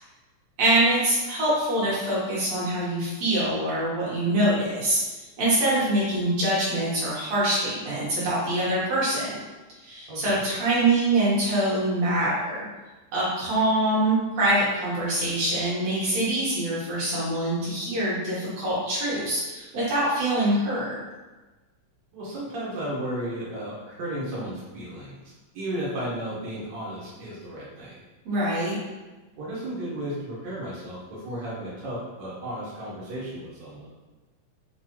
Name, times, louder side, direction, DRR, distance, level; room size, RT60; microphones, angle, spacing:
voice 1, 0.6-5.0 5.4-9.4 9.8-12.7 13.1-20.9 28.3-28.8, right 1 dB, 60° right, -8 dB, 2.3 m, -24 dB
voice 2, 10.1-10.4 22.1-28.0 29.4-33.9, right 1 dB, 85° right, -7 dB, 0.9 m, -34 dB
5.6 x 2.3 x 3.0 m, 1.2 s
omnidirectional pair, 3.8 m